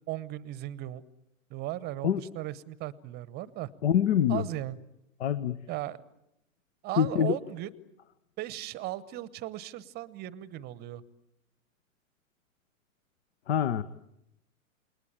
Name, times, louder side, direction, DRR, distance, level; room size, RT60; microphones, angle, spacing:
voice 1, 0.1-1.0 1.5-3.7 4.3-4.8 5.7-6.0 6.8-7.7 8.4-11.0, right 15 dB, 25° right, 20 dB, 1.0 m, -37 dB
voice 2, 3.8-4.4 5.2-5.6 7.0-7.4 13.5-13.8, left 9 dB, 50° left, 15 dB, 1.0 m, -25 dB
29.0 x 20.5 x 8.8 m, 0.83 s
figure-of-eight pair, 110°, 41 cm